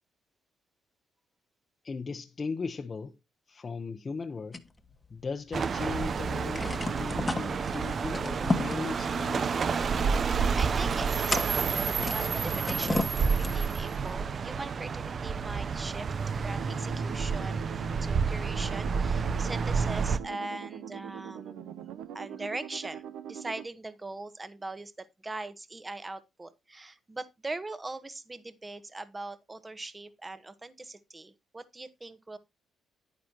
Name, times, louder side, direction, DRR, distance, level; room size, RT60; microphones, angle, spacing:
voice 1, 1.8-3.1 3.5-4.6 5.1-9.5, left 4 dB, 35° left, 0.9 m, -37 dB
sound 1, 4.5-5.7 6.0-6.1 6.3-13.9, left 2 dB, 20° left, 1.2 m, -35 dB
sound 2, 5.5-20.2, right 5 dB, 45° right, 0.7 m, -29 dB
voice 2, 10.0-16.1 16.4-17.7 18.0-21.8 22.1-32.4, right 2 dB, 20° right, 1.2 m, -41 dB
sound 3, 16.5-23.7, right 10 dB, 90° right, 0.8 m, -43 dB
10.5 x 9.4 x 2.9 m
cardioid pair, 90°, 0 cm